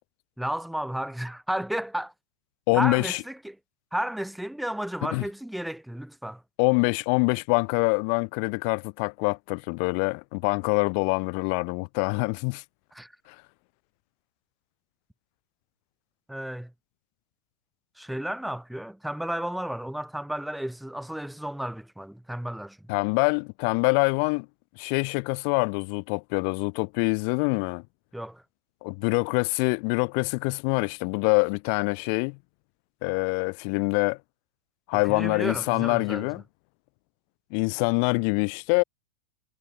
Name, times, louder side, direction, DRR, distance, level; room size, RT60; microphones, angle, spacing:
voice 1, 0.4-2.1 2.7-3.6 3.9-6.4 12.9-13.1 16.3-16.7 18.0-22.9 28.1-28.4 34.9-36.3, right 1 dB, ahead, 0.6 m, -33 dB
voice 2, 2.7-3.2 5.0-5.2 6.6-12.6 22.9-24.5 24.8-27.8 28.8-32.4 33.0-34.2 34.9-36.4 37.5-38.8, left 40 dB or more, 45° left, 1.2 m, -25 dB
figure-of-eight pair, 90°, 0 cm